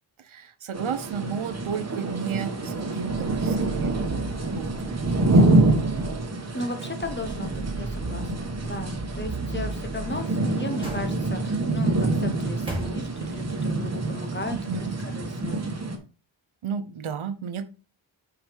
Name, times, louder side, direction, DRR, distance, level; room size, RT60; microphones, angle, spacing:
voice 1, 0.2-4.2 4.5-4.7 5.2-6.1 6.4-6.6 14.5-15.0 16.6-17.7, right 7 dB, 75° right, 12 dB, 0.8 m, -33 dB
sound 1, 0.7-16.0, right 2 dB, 30° right, 1.1 m, -26 dB
sound 2, 3.1-6.3 7.0-10.3, right 2 dB, 50° right, 1.4 m, -36 dB
voice 2, 6.5-15.6, left 2 dB, 25° left, 7 dB, 0.8 m, -36 dB
sound 3, 9.9-11.6 12.2-13.5 13.8-13.9, right 1 dB, 10° right, 2.0 m, -38 dB
6.3 x 4.9 x 3.4 m, 0.34 s
wide cardioid pair, 130°, 49 cm